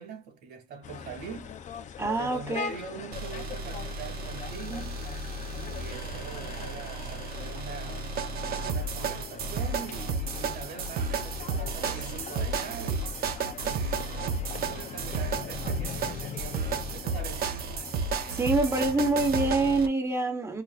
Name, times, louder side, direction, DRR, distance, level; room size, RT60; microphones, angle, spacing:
voice 1, 0.0-5.0 5.5-8.1 8.6-13.2 13.6-17.5, right 6 dB, 80° right, 2.2 m, -43 dB
sound 1, 0.8-19.9, left 7 dB, 45° left, 0.6 m, -41 dB
voice 2, 2.0-2.7 18.3-20.6, right 2 dB, 15° right, 1.1 m, -26 dB
sound 2, 3.1-19.9, right 4 dB, 60° right, 0.9 m, -33 dB
4.9 x 2.3 x 2.4 m
cardioid pair, 110°, 17 cm